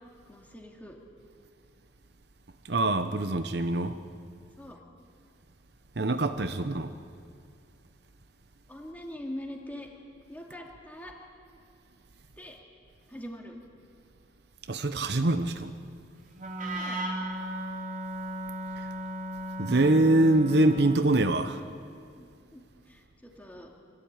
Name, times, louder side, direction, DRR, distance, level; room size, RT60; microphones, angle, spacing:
voice 1, 0.3-1.0 4.6-4.8 8.7-9.9 10.3-11.1 12.4-12.6 13.1-13.6 16.7-17.1 22.2-23.7, left 1 dB, 10° left, 2.5 m, -43 dB
voice 2, 2.6-4.0 6.0-7.0 14.7-15.7 18.8-18.9 19.6-21.6, right 2 dB, 60° right, 0.8 m, -24 dB
Wind instrument woodwind instrument, 16.3-21.2, equal, 45° right, 3.0 m, -36 dB
23.5 x 14.5 x 8.9 m
head